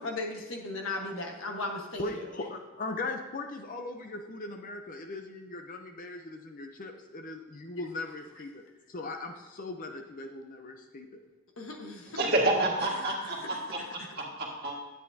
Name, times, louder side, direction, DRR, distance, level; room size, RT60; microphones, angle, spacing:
voice 1, 0.0-2.2 11.6-12.2, left 2 dB, 65° left, 1 dB, 1.3 m, -36 dB
voice 2, 2.0-8.6 8.9-11.1, left 2 dB, 40° left, 5 dB, 0.6 m, -39 dB
voice 3, 12.1-14.7, right 2 dB, 50° right, -1 dB, 1.7 m, -29 dB
10.0 x 8.6 x 2.7 m, 1.2 s
head